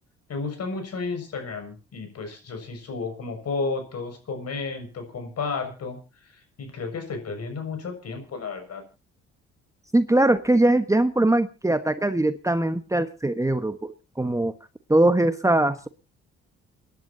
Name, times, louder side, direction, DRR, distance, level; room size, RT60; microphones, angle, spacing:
voice 1, 0.3-6.0 6.3-8.8, left 4 dB, 55° left, 6 dB, 6.4 m, -32 dB
voice 2, 9.9-14.5 14.9-15.9, right 1 dB, 10° right, 10 dB, 1.2 m, -21 dB
29.5 x 11.0 x 2.8 m, 0.30 s
hypercardioid pair, 60°, 30 cm